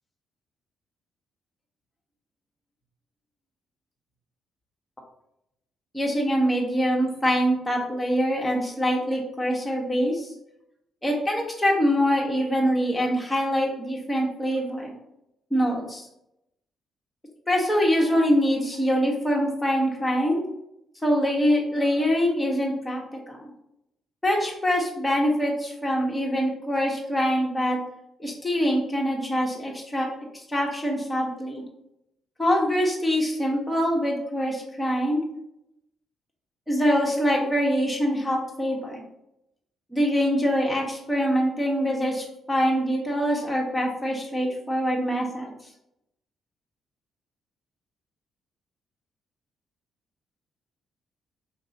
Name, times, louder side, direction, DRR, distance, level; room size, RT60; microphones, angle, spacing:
voice 1, 5.9-10.3 11.0-14.9 15.5-16.0 17.5-20.4 21.0-23.5 24.2-27.8 28.2-30.1 30.3-31.6 32.4-35.2 36.7-39.0 39.9-45.5, equal, 10° left, -2 dB, 1.5 m, -24 dB
5.0 x 2.9 x 2.9 m, 0.83 s
hypercardioid pair, 45°, 0 cm